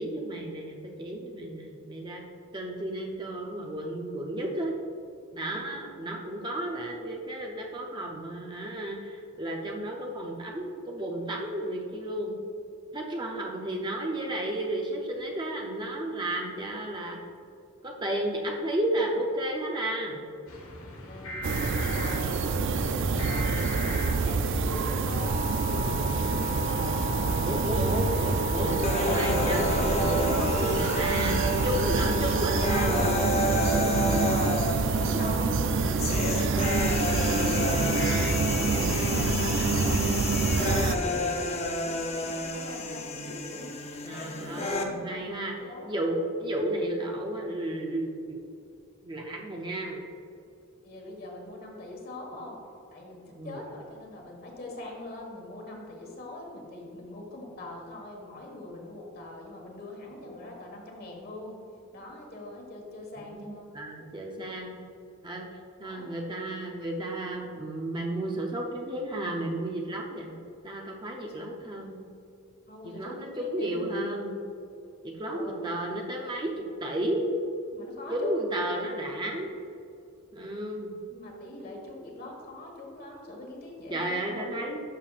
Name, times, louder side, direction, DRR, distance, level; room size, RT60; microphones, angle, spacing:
voice 1, 0.0-2.2 2.5-4.8 5.3-12.4 12.9-17.2 17.8-20.2 27.4-31.4 31.6-33.0 44.0-45.6 45.8-48.4 49.0-50.0 53.3-53.6 63.2-64.7 65.2-65.5 65.8-70.3 70.6-72.0 72.8-74.4 75.0-76.5 76.8-77.3 78.1-79.5 80.3-80.9 83.9-84.8, right 1 dB, 20° right, 0 dB, 0.6 m, -33 dB
sound 1, 20.5-39.3, left 1 dB, 85° left, 1.4 m, -37 dB
voice 2, 21.1-21.4 21.9-22.6 23.1-25.5 25.8-28.4 31.9-32.8 33.7-34.6 35.0-43.7 44.3-45.9 50.8-52.6 52.9-61.6 61.9-63.7 65.8-66.1 71.2-71.3 72.7-73.8 75.3-75.7 77.7-78.5 81.1-84.6, left 1 dB, 45° left, -1 dB, 1.6 m, -42 dB
sound 2, 21.4-41.0, right 4 dB, 60° right, 0.4 m, -27 dB
sound 3, 28.8-44.8, left 2 dB, 30° left, 0.7 m, -30 dB
11.0 x 6.8 x 2.5 m, 2.6 s
head